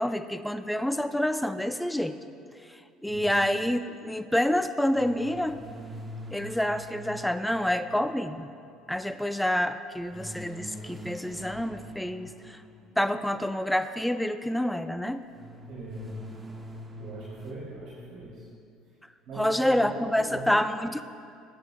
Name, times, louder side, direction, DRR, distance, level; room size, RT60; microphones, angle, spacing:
voice 1, 0.0-2.2 3.0-5.6 6.3-8.5 8.9-12.3 13.0-15.2 19.4-21.0, left 1 dB, 5° left, 10 dB, 0.6 m, -27 dB
voice 2, 3.0-3.5 15.7-16.2 17.0-18.4 19.3-20.5, right 2 dB, 65° right, -6 dB, 3.0 m, -41 dB
sound 1, 4.9-8.5 10.1-13.2 15.3-17.5, equal, 25° right, 1.4 m, -44 dB
21.0 x 9.1 x 2.3 m, 2.4 s
supercardioid pair, 80°, 0 cm